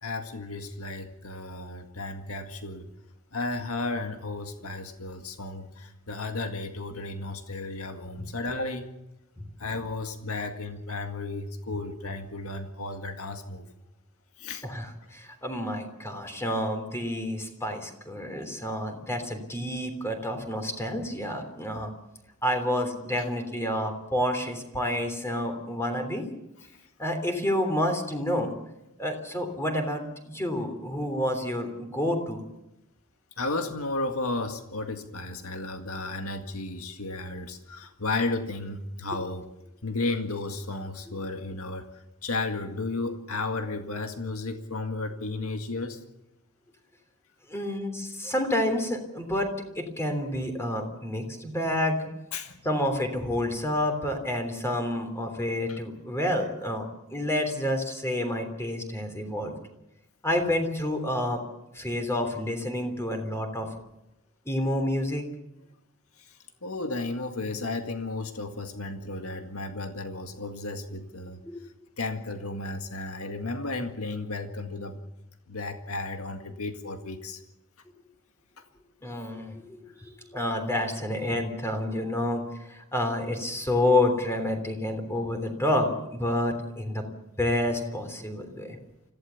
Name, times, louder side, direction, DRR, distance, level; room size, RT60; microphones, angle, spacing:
voice 1, 0.0-2.9 3.3-8.9 9.6-13.7 14.4-14.6 33.4-39.5 39.8-46.0 52.3-52.6 55.7-55.8 66.2-71.4 72.0-75.0 75.5-77.4, left 2 dB, 85° left, 6 dB, 1.9 m, -33 dB
voice 2, 14.6-21.9 22.4-26.2 27.0-28.5 29.0-32.4 47.5-52.1 52.6-59.5 60.2-61.4 61.7-63.7 64.4-65.3 71.4-71.6 79.0-87.0 87.4-88.8, left 1 dB, 10° left, 5 dB, 3.4 m, -29 dB
25.5 x 16.0 x 7.1 m, 0.90 s
head